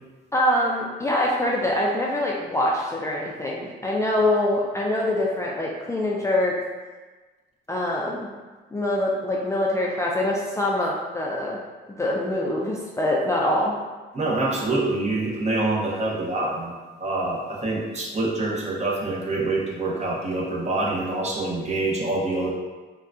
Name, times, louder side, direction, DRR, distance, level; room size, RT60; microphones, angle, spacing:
voice 1, 0.3-6.6 7.7-8.3 8.7-11.6 11.9-13.7, left 1 dB, 15° left, -4 dB, 0.3 m, -24 dB
voice 2, 14.1-22.5, right 2 dB, 35° right, -3 dB, 0.7 m, -26 dB
3.7 x 2.2 x 2.4 m, 1.3 s
cardioid pair, 90°, 20 cm